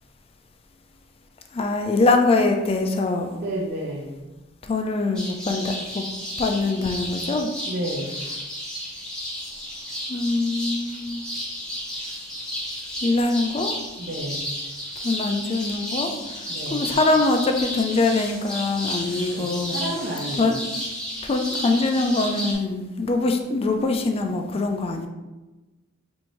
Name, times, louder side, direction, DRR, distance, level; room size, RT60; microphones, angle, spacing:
voice 1, 1.5-3.4 4.7-6.0 6.4-7.5 10.1-11.2 13.0-13.7 15.0-16.1 16.7-19.8 20.4-20.6 21.2-25.1, left 3 dB, 30° left, 4 dB, 0.4 m, -23 dB
voice 2, 3.4-4.4 7.7-8.2 14.0-14.5 16.4-17.0 19.3-20.5, right 1 dB, 50° right, -3 dB, 0.6 m, -31 dB
sound 1, 5.1-22.5, left 1 dB, 5° left, 0.8 m, -33 dB
4.5 x 2.6 x 2.9 m, 1.1 s
head